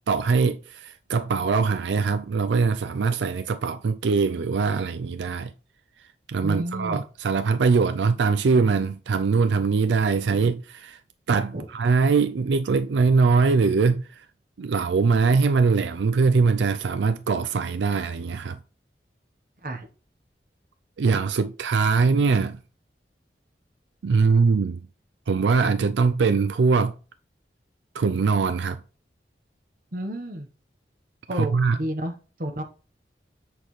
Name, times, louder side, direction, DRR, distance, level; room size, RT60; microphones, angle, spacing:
voice 1, 0.1-5.5 6.3-11.0 11.3-14.3 14.6-18.6 21.0-22.6 24.0-24.8 25.3-26.9 27.9-28.8 31.3-31.8, right 4 dB, 90° right, 0.4 m, -22 dB
voice 2, 6.4-7.0 11.5-11.7 19.6-19.9 22.1-22.2 29.9-30.5 31.3-32.1 32.4-32.6, equal, 50° right, 1.1 m, -31 dB
7.7 x 6.6 x 3.2 m
head